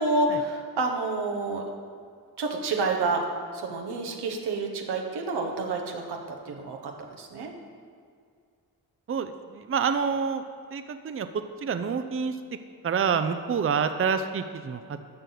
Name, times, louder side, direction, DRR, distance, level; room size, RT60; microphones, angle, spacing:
voice 1, 0.0-1.6 2.4-3.2 3.5-7.5, right 3 dB, 90° right, 1 dB, 1.1 m, -29 dB
voice 2, 9.1-10.4 10.7-11.3 11.6-12.4 12.8-14.8, right 6 dB, 35° right, 9 dB, 0.6 m, -27 dB
11.0 x 6.6 x 4.0 m, 2.2 s
cardioid pair, 45°, 39 cm